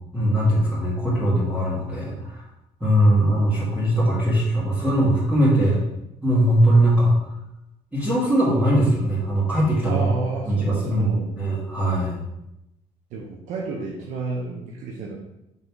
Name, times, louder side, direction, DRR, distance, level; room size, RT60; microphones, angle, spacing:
voice 1, 0.1-2.2 2.8-5.8 6.2-7.1 7.9-10.1 10.5-11.1 11.3-12.2, right 1 dB, 10° right, -10 dB, 2.2 m, -20 dB
voice 2, 9.8-11.4 13.1-15.2, right 3 dB, 80° right, -1 dB, 0.9 m, -31 dB
5.6 x 3.8 x 4.7 m, 0.89 s
cardioid pair, 105°, 13 cm